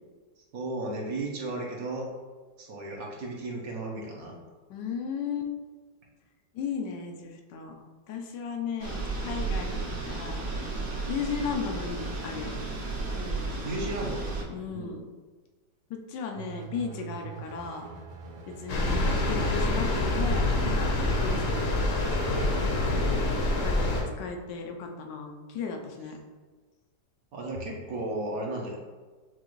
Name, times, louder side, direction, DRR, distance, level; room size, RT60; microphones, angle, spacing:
voice 1, 0.5-2.1 2.6-4.4 13.6-14.3 14.7-15.0 22.9-23.7 27.3-28.8, right 2 dB, 65° right, -2 dB, 1.1 m, -35 dB
voice 2, 4.7-5.5 6.5-7.7 8.1-10.4 11.1-12.6 13.1-13.4 14.5-15.0 15.9-17.9 18.5-21.9 23.6-26.2, left 5 dB, 85° left, 3 dB, 1.3 m, -35 dB
sound 1, 8.8-14.4, right 3 dB, 45° right, 0.9 m, -33 dB
sound 2, 16.4-22.0, right 6 dB, 80° right, 1.2 m, -43 dB
sound 3, 18.7-24.0, left 2 dB, 60° left, 1.0 m, -26 dB
6.1 x 2.5 x 3.0 m, 1.4 s
omnidirectional pair, 1.8 m